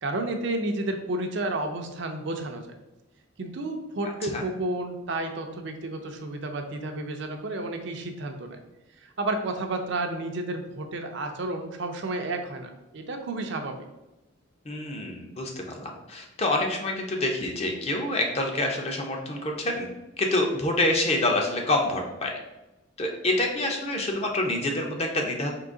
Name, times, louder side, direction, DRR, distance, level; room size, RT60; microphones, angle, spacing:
voice 1, 0.0-2.7 3.4-8.6 9.0-13.8, right 2 dB, 55° right, 5 dB, 0.5 m, -31 dB
voice 2, 14.6-19.9 20.2-22.4 23.0-25.5, left 2 dB, 30° left, 2 dB, 0.5 m, -27 dB
3.8 x 2.8 x 3.7 m, 1.0 s
head